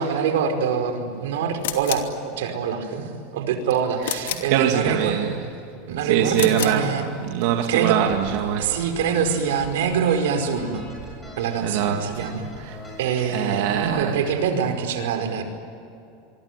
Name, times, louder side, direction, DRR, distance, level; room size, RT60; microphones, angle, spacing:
voice 1, 0.0-5.1 5.9-7.1 7.7-8.0 8.6-10.8 11.4-12.5 13.0-15.4, right 7 dB, 90° right, 6 dB, 5.1 m, -24 dB
sound 1, 1.6-2.2 4.0-4.6 6.3-6.8, left 11 dB, 90° left, 2.9 m, -30 dB
voice 2, 4.5-5.3 6.1-6.9 7.2-8.8 11.6-12.2 12.7-12.8 13.3-14.1, right 9 dB, 55° right, 3 dB, 2.0 m, -23 dB
sound 2, 8.8-13.8, equal, 5° left, 7.9 m, -42 dB
27.0 x 23.5 x 9.5 m, 2.6 s
supercardioid pair, 175°, 0 cm